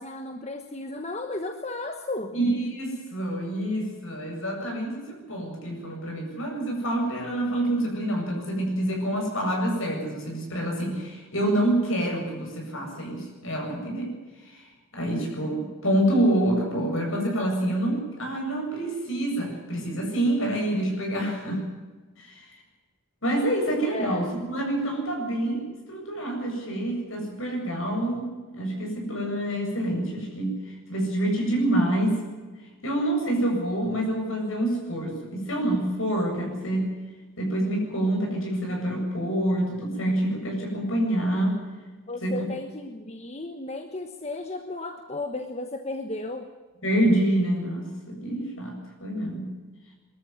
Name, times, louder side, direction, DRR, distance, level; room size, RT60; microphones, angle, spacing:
voice 1, 0.0-2.4 15.1-15.3 23.9-24.3 42.1-46.5, left 2 dB, 30° left, 5 dB, 1.2 m, -34 dB
voice 2, 2.3-14.2 14.5-14.7 14.9-21.6 22.2-22.5 23.2-32.2 32.8-36.9 37.4-41.6 42.2-42.4 46.8-49.5, right 1 dB, 65° left, 1 dB, 8.0 m, -27 dB
22.5 x 14.0 x 9.6 m, 1.3 s
head